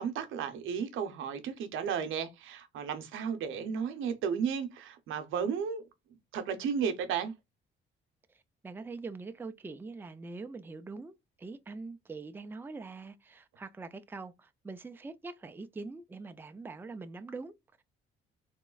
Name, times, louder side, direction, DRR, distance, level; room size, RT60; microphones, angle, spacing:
voice 1, 0.0-5.8 6.3-7.3, right 7 dB, 85° right, 0.7 m, -33 dB
voice 2, 8.3-17.8, right 3 dB, 10° right, 0.4 m, -44 dB
3.6 x 3.0 x 2.3 m
cardioid pair, 90°, 20 cm